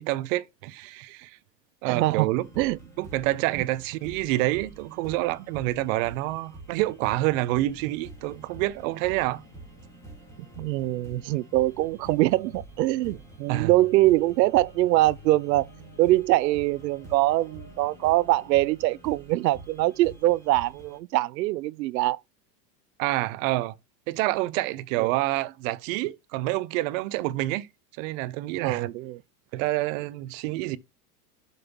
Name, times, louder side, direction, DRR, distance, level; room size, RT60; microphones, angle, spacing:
voice 1, 0.0-1.4 1.8-2.5 3.0-9.4 13.5-13.7 23.0-23.8 24.1-27.7 28.0-28.9 29.5-30.8, right 17 dB, 50° right, 0.7 m, -27 dB
voice 2, 1.9-2.3 2.6-2.8 10.6-15.7 16.0-22.2 25.0-25.1 28.6-29.2, right 17 dB, 90° right, 0.5 m, -23 dB
sound 1, 2.4-21.0, right 3 dB, 5° left, 3.0 m, -47 dB
sound 2, 4.0-18.5, left 7 dB, 80° left, 2.1 m, -55 dB
7.5 x 5.4 x 2.9 m
supercardioid pair, 125°, 49 cm